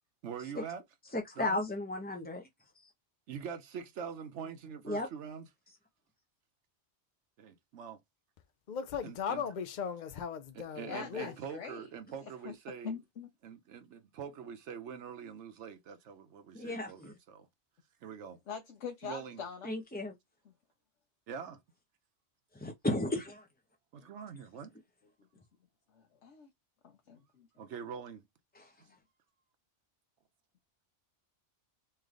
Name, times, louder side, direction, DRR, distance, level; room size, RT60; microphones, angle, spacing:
voice 1, 0.2-0.8 1.4-1.6 3.3-5.4 7.4-8.0 9.0-9.4 10.5-12.9 13.4-17.5 18.0-18.4 19.0-19.4 21.3-21.6 23.9-24.7 27.6-28.2, right 7 dB, 75° right, 1.0 m, -44 dB
voice 2, 1.1-2.4 4.8-5.1 16.5-17.1 19.6-20.1 22.5-23.5 28.6-28.7, left 2 dB, 10° left, 0.5 m, -34 dB
voice 3, 8.7-11.3, left 7 dB, 55° left, 0.6 m, -37 dB
voice 4, 10.9-11.9 12.2-12.5 12.8-13.3 18.5-19.7 20.4-20.5 25.2-25.4 25.9-26.5 26.8-27.5 28.9-29.0, left 6 dB, 80° left, 1.1 m, -44 dB
3.2 x 3.0 x 3.7 m
omnidirectional pair, 1.2 m